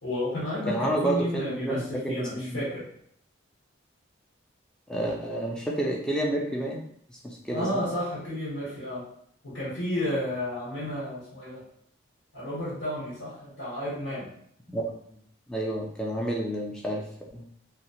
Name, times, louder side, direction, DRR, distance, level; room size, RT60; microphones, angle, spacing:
voice 1, 0.0-2.8 7.5-9.0 9.4-11.6 12.3-14.3, left 1 dB, 85° left, -8 dB, 1.2 m, -32 dB
voice 2, 0.7-2.6 4.9-6.8 7.1-7.8 14.7-15.2 15.5-17.0 17.3-17.4, right 1 dB, 5° left, -2 dB, 0.4 m, -30 dB
2.8 x 2.0 x 2.8 m, 0.66 s
head